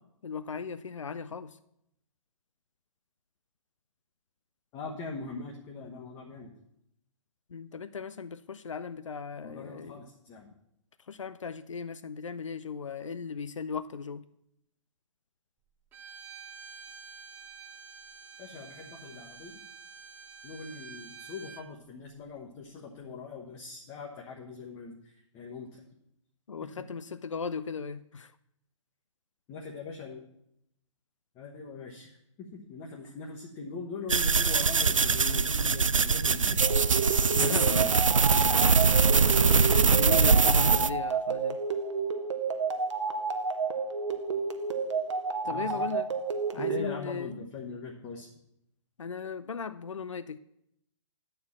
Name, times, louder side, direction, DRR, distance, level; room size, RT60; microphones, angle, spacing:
voice 1, 0.2-1.6 7.5-10.0 11.1-14.3 26.5-28.3 33.0-33.1 37.4-37.9 38.6-39.0 39.6-41.6 45.4-46.1 46.5-47.5 49.0-50.4, left 5 dB, 75° left, 13 dB, 0.4 m, -37 dB
voice 2, 4.7-6.5 9.4-10.5 18.4-19.6 20.4-25.8 29.5-30.2 31.3-32.1 32.4-36.7 37.3-38.0 38.3-38.6 45.5-45.9 46.6-48.3, left 4 dB, 20° left, -1 dB, 1.1 m, -41 dB
Bowed string instrument, 15.9-21.7, right 6 dB, 10° right, 0.5 m, -48 dB
sound 1, 34.1-40.9, right 5 dB, 80° right, 0.4 m, -23 dB
sound 2, 36.6-46.8, right 5 dB, 65° right, 0.9 m, -31 dB
11.0 x 4.4 x 7.3 m, 0.78 s
figure-of-eight pair, 125°, 16 cm